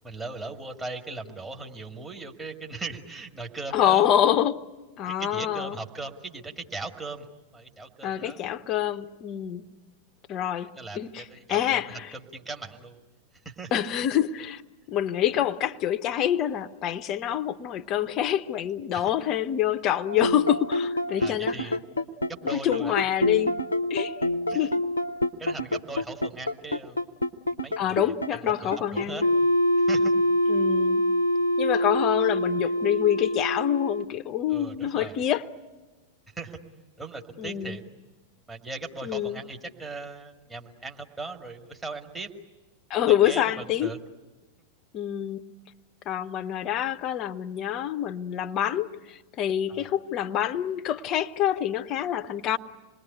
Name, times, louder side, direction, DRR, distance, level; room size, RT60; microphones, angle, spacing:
voice 1, 0.0-4.1 5.1-7.3 7.5-8.4 10.6-13.0 13.5-13.7 18.9-19.1 21.2-21.8 22.4-23.0 24.5-24.7 25.4-27.1 27.6-28.0 28.3-29.2 29.8-30.1 34.5-35.2 36.4-36.6 37.0-37.8 38.5-42.3 43.1-44.0 49.7-49.9, right 3 dB, 15° right, 2.1 m, -38 dB
voice 2, 3.7-4.6 5.0-5.8 8.0-9.6 10.3-10.7 10.9-12.1 13.7-14.6 14.9-21.5 22.5-23.5 23.9-24.2 24.5-24.8 27.8-29.3 30.5-31.0 31.6-35.4 37.4-37.8 39.0-39.4 42.9-43.9 44.9-45.4 46.1-52.6, left 11 dB, 35° left, 0.8 m, -26 dB
sound 1, 20.1-34.0, left 1 dB, 75° left, 0.8 m, -25 dB
27.0 x 20.5 x 9.8 m
figure-of-eight pair, 90°, 0 cm